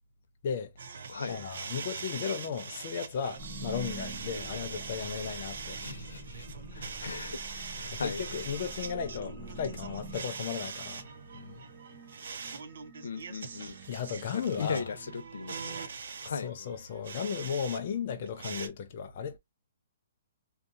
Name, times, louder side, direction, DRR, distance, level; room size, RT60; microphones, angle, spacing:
voice 1, 0.4-0.7 1.3-5.8 7.5-11.6 13.9-14.9 16.3-19.4, left 7 dB, 30° left, 0.4 m, -35 dB
sound 1, 0.8-17.8 18.1-18.7, right 5 dB, 55° right, 0.5 m, -42 dB
sound 2, 3.4-15.3, right 2 dB, 10° right, 0.6 m, -46 dB
voice 2, 5.8-7.5 7.8-8.2 13.0-13.8 14.3-15.9 16.2-16.5, left 5 dB, 90° left, 0.7 m, -38 dB
2.6 x 2.4 x 2.4 m
hypercardioid pair, 180°, 0 cm